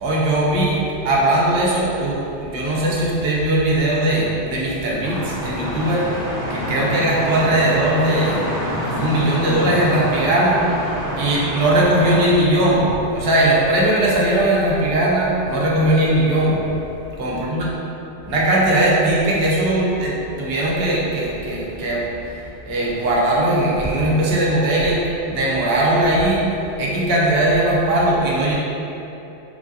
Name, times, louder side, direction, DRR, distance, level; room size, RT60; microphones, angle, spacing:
voice 1, 0.0-8.4 8.7-10.6 11.2-16.6 17.2-17.7 18.3-26.5 26.8-28.5, right 1 dB, 65° right, -4 dB, 0.8 m, -19 dB
sound 1, 5.0-12.3, equal, 90° left, 1.3 m, -27 dB
3.2 x 2.4 x 2.6 m, 3.0 s
omnidirectional pair, 1.2 m